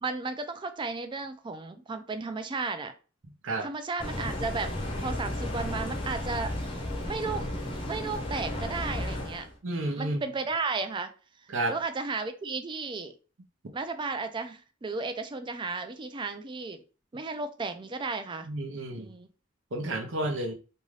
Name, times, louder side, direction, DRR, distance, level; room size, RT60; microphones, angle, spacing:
voice 1, 0.0-2.9 3.6-4.7 5.0-6.5 7.1-7.5 7.8-9.5 10.0-11.1 11.7-13.1 13.7-16.8 17.1-18.5 18.9-19.3, right 4 dB, 25° right, 9 dB, 0.3 m, -34 dB
sound 1, 4.0-9.5, left 1 dB, 25° left, 0.6 m, -33 dB
voice 2, 9.6-10.2 11.5-11.8 18.4-19.1 19.7-20.5, right 2 dB, 70° right, 3 dB, 0.7 m, -31 dB
2.6 x 2.3 x 3.1 m, 0.35 s
head